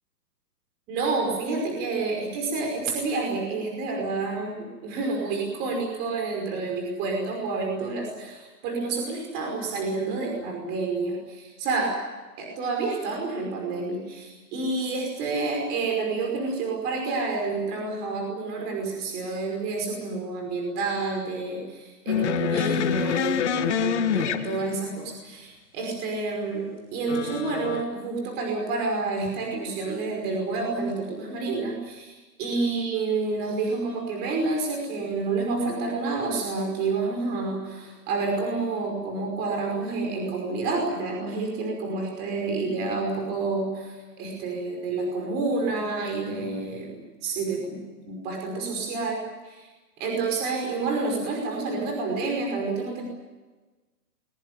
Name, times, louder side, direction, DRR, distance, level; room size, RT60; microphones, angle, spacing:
voice 1, 0.9-12.0 12.4-49.7 50.0-53.0, right 3 dB, 20° right, 1 dB, 5.3 m, -29 dB
sound 1, 22.1-25.0 27.1-27.8, left 8 dB, 45° left, 1.9 m, -26 dB
22.5 x 22.0 x 9.6 m, 1.2 s
hypercardioid pair, 160°, 48 cm